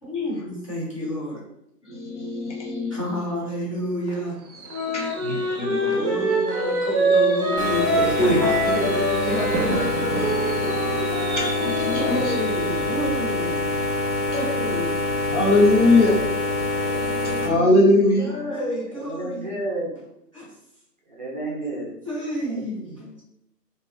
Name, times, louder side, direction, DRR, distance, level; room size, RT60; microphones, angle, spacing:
voice 1, 0.0-1.4 2.9-4.4 5.9-9.5 11.9-13.6 14.3-14.9 18.2-19.5 20.3-20.5 21.6-21.7 22.0-23.0, equal, 20° left, -10 dB, 0.7 m, -29 dB
voice 2, 1.8-3.0 4.8-6.2 8.2-8.4 10.1-12.3 15.3-18.5, left 2 dB, 45° left, -3 dB, 1.0 m, -22 dB
Fireworks, 3.4-15.1 15.5-15.8 16.0-16.1, right 3 dB, 85° right, 0.7 m, -36 dB
Wind instrument woodwind instrument, 4.7-12.1, right 1 dB, 5° right, 1.4 m, -25 dB
sound 1, 7.6-17.5, left 2 dB, 60° left, 1.3 m, -25 dB
voice 3, 18.9-19.9 21.1-21.9 22.5-23.2, right 2 dB, 30° right, -3 dB, 0.6 m, -32 dB
3.1 x 2.6 x 2.4 m, 0.77 s
figure-of-eight pair, 150°, 50 cm